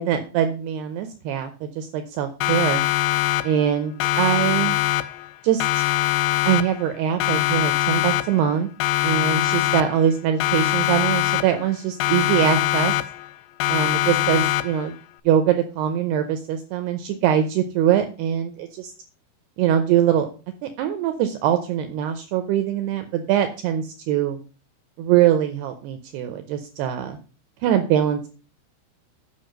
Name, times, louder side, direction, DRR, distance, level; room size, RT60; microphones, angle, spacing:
voice 1, 0.0-2.8 3.4-4.8 5.4-5.8 6.5-8.7 9.0-12.9 13.7-14.9 15.3-18.9 19.6-20.3 20.6-24.4 25.0-27.2 27.6-28.3, right 10 dB, 85° right, 8 dB, 2.3 m, -22 dB
Siren, 2.4-3.7 4.0-5.3 5.6-6.9 7.2-8.5 8.8-10.1 10.4-11.7 12.0-13.3 13.6-14.9, left 16 dB, 90° left, 2.4 m, -23 dB
9.7 x 5.4 x 6.5 m, 0.36 s
omnidirectional pair, 5.7 m